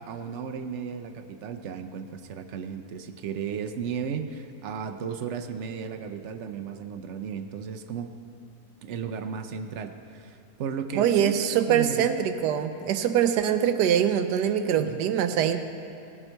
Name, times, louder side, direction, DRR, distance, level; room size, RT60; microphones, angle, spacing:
voice 1, 0.0-8.1 8.8-11.3 11.7-12.2 14.8-15.0, right 6 dB, 60° right, 7 dB, 0.7 m, -34 dB
voice 2, 10.9-15.6, right 9 dB, 80° right, 9 dB, 1.3 m, -23 dB
18.5 x 8.0 x 4.5 m, 2.6 s
omnidirectional pair, 1.8 m